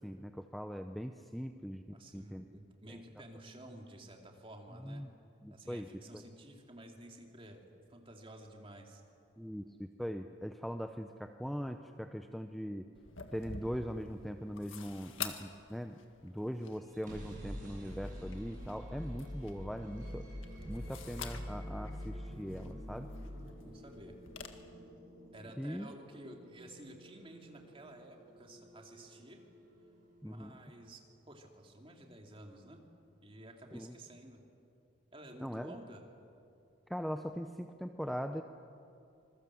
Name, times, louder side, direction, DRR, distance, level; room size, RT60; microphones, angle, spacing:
voice 1, 0.0-2.5 2.9-3.0 4.8-5.1 5.4-5.9 6.1-6.2 9.4-12.9 13.3-20.3 20.7-23.1 25.6-25.9 30.2-30.6 33.7-34.0 35.4-35.8 36.9-38.4, equal, ahead, 6 dB, 0.6 m, -41 dB
voice 2, 1.9-5.1 5.5-7.6 7.9-9.0 23.2-24.1 25.3-29.4 30.2-32.8 33.2-34.4 35.1-36.0, right 1 dB, 25° right, 2 dB, 2.7 m, -52 dB
sound 1, 12.9-24.5, left 6 dB, 75° left, 1.9 m, -49 dB
sound 2, 16.8-30.6, equal, 40° right, 7.6 m, -47 dB
26.0 x 22.0 x 7.7 m, 2.6 s
head